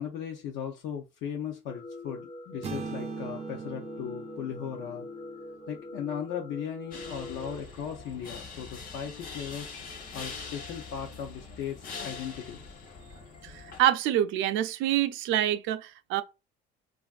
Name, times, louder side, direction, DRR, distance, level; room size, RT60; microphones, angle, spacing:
voice 1, 0.0-5.1 5.7-9.7 10.1-13.2, left 8 dB, 75° left, 0.6 m, -37 dB
sound 1, 1.7-7.6, left 2 dB, 25° left, 0.4 m, -43 dB
sound 2, 2.6-6.6, right 6 dB, 35° right, 0.4 m, -41 dB
sound 3, 6.9-13.8, left 4 dB, 45° left, 0.8 m, -43 dB
voice 2, 13.4-16.2, right 12 dB, 85° right, 0.4 m, -26 dB
3.2 x 2.4 x 2.3 m
cardioid pair, 140°, 20 cm